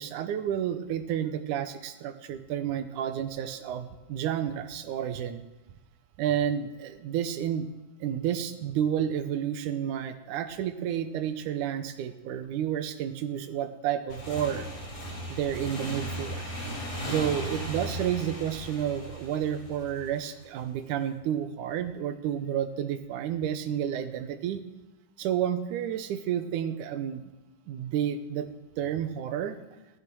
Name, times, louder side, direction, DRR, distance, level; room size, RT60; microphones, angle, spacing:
voice 1, 0.0-5.4 6.2-7.7 8.0-14.7 15.3-16.6 17.0-24.6 25.2-27.2 27.7-28.5 28.8-29.6, right 9 dB, 75° right, 9 dB, 2.3 m, -30 dB
Motorcycle / Engine, 14.1-20.5, equal, 80° left, 7.5 m, -37 dB
14.5 x 12.5 x 6.2 m, 1.0 s
omnidirectional pair, 3.8 m